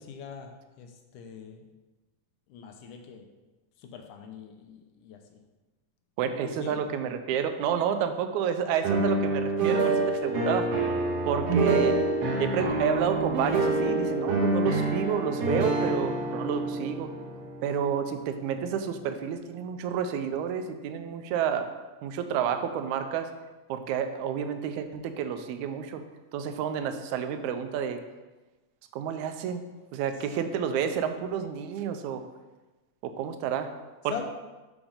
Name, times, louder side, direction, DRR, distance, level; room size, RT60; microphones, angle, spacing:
voice 1, 0.0-1.7 2.5-3.3 3.8-5.4 6.4-6.8 34.1-34.2, left 7 dB, 85° left, 4 dB, 2.2 m, -43 dB
voice 2, 6.2-10.7 11.3-12.0 12.4-17.1 17.6-21.7 22.0-23.3 23.7-26.0 26.3-28.0 28.9-29.6 29.9-32.2 33.0-33.7 34.0-34.2, right 8 dB, 80° right, 7 dB, 1.9 m, -30 dB
sound 1, 8.8-18.8, right 2 dB, 65° right, 1.7 m, -27 dB
5.9 x 5.0 x 5.5 m, 1.2 s
omnidirectional pair, 3.6 m